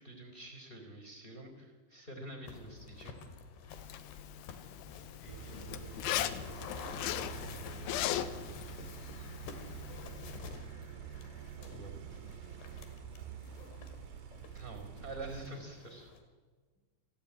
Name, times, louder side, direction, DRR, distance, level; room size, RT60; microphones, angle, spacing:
voice 1, 0.0-3.1 11.6-12.0 12.7-12.9 14.5-16.1, right 2 dB, 15° left, 4 dB, 2.6 m, -47 dB
sound 1, 2.5-16.2, left 5 dB, 65° left, 3.6 m, -50 dB
Zipper (clothing), 3.7-10.4, left 12 dB, 85° left, 3.2 m, -39 dB
voice 2, 4.9-8.8 13.4-14.1, right 1 dB, 40° left, -1 dB, 8.0 m, -55 dB
sound 2, 5.3-15.5, right 9 dB, 80° right, 2.2 m, -47 dB
29.0 x 13.0 x 8.7 m, 1.5 s
omnidirectional pair, 5.5 m